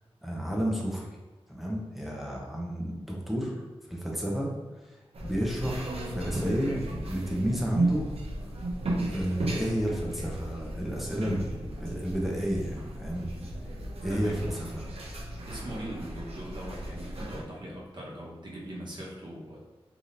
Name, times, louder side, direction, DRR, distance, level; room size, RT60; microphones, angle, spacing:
voice 1, 0.2-1.1 1.5-4.5 4.9-5.0 5.2-8.1 9.1-13.5 14.0-14.9, equal, ahead, -2 dB, 0.7 m, -32 dB
sound 1, 5.1-17.4, right 1 dB, 70° right, 0.7 m, -34 dB
voice 2, 14.1-14.6 15.5-19.6, right 1 dB, 45° right, -5 dB, 1.0 m, -40 dB
3.4 x 2.8 x 2.5 m, 1.3 s
wide cardioid pair, 105°, 11 cm